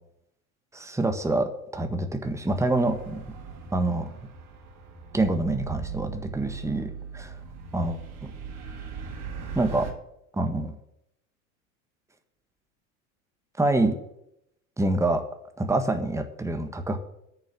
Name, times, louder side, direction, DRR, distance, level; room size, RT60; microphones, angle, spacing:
voice 1, 0.7-3.2 3.7-4.0 5.1-7.3 7.7-8.3 9.5-9.9 10.4-10.7 13.6-13.9 14.8-15.2 15.6-17.0, right 2 dB, 5° right, 6 dB, 1.5 m, -26 dB
sound 1, 2.5-9.9, right 6 dB, 60° right, 2.6 m, -39 dB
8.8 x 7.1 x 8.8 m, 0.78 s
hypercardioid pair, 85°, 43 cm